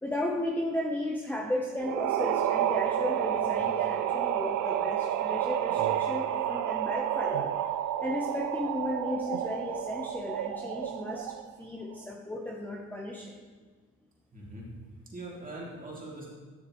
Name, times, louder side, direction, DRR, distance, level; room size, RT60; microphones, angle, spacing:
voice 1, 0.0-7.5 8.0-13.4, left 1 dB, 5° left, -1 dB, 0.8 m, -34 dB
sound 1, 1.8-11.5, right 11 dB, 70° right, 0.5 m, -30 dB
voice 2, 14.3-14.8 15.1-16.3, right 1 dB, 25° right, -4 dB, 2.6 m, -42 dB
11.0 x 6.6 x 3.1 m, 1.5 s
cardioid pair, 90°, 30 cm